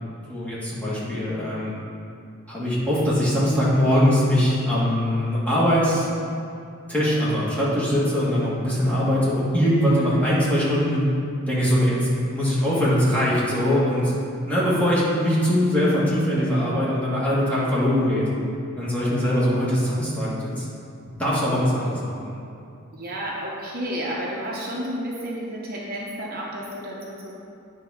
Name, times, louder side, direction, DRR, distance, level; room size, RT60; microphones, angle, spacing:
voice 1, 0.3-1.7 2.5-6.1 6.9-11.0 11.5-14.1 14.4-18.3 18.8-20.6 21.2-22.3, equal, 5° left, -9 dB, 1.7 m, -22 dB
voice 2, 10.0-10.4 22.9-27.3, equal, 45° right, -4 dB, 0.8 m, -31 dB
8.9 x 3.7 x 5.7 m, 2.6 s
head